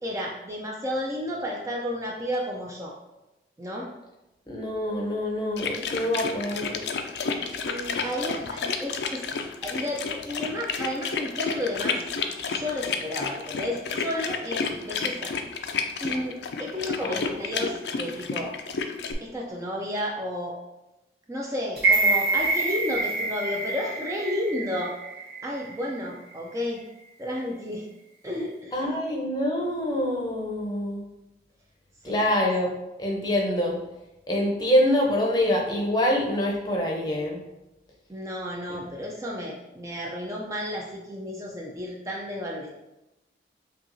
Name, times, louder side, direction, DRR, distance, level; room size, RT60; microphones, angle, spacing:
voice 1, 0.0-2.9 3.6-3.9 7.6-9.3 9.6-12.0 12.5-15.3 16.0-18.5 19.2-20.6 21.3-24.9 25.4-26.8 27.2-27.9 28.2-28.8 32.0-32.1 38.1-42.7, left 1 dB, 20° right, -2 dB, 0.3 m, -32 dB
voice 2, 4.5-6.8 17.0-17.3 28.7-31.0 32.0-33.8 34.3-37.4 38.7-38.8, left 1 dB, 25° left, -1 dB, 0.6 m, -25 dB
sound 1, 5.6-19.1, left 5 dB, 75° left, 0.4 m, -30 dB
sound 2, 21.8-25.9 26.3-26.4, right 3 dB, 65° right, 0.9 m, -26 dB
5.6 x 2.4 x 2.6 m, 0.98 s
head